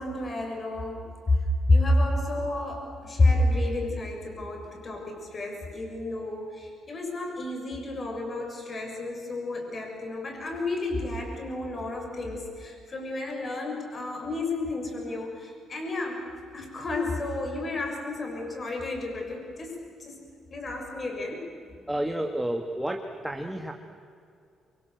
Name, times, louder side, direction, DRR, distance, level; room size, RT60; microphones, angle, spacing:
voice 1, 0.0-1.4 1.7-16.3 16.5-20.2 20.5-21.4, left 2 dB, 40° left, 2 dB, 7.2 m, -30 dB
voice 2, 21.9-23.7, right 1 dB, 5° right, 3 dB, 1.9 m, -30 dB
27.5 x 25.0 x 8.0 m, 2.4 s
cardioid pair, 90°, 0 cm